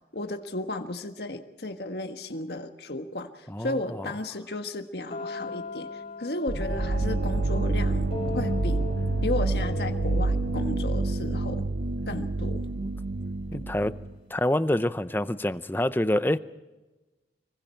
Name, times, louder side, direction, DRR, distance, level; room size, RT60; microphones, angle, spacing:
voice 1, 0.1-8.1 8.3-8.8 9.2-11.7 12.1-12.7 13.5-13.6, left 2 dB, 65° left, 6 dB, 1.5 m, -34 dB
voice 2, 3.5-4.1 12.8-12.9 13.5-13.9 14.3-16.4, left 1 dB, 10° left, 13 dB, 0.6 m, -27 dB
sound 1, 5.1-12.8, left 2 dB, 35° left, 6.1 m, -39 dB
sound 2, 6.5-14.2, right 2 dB, 70° right, 0.8 m, -28 dB
25.5 x 23.0 x 4.5 m, 1.1 s
head